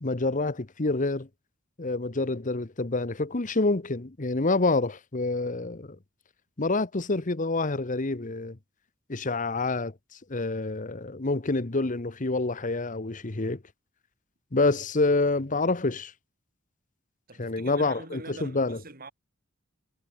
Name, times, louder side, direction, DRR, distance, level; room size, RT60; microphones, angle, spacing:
voice 1, 0.0-1.3 1.8-5.9 6.6-8.6 9.1-9.9 10.3-13.6 14.5-16.1 17.4-18.8, left 3 dB, 40° left, 1.1 m, -27 dB
voice 2, 17.3-19.1, right 3 dB, 45° right, 4.4 m, -44 dB
head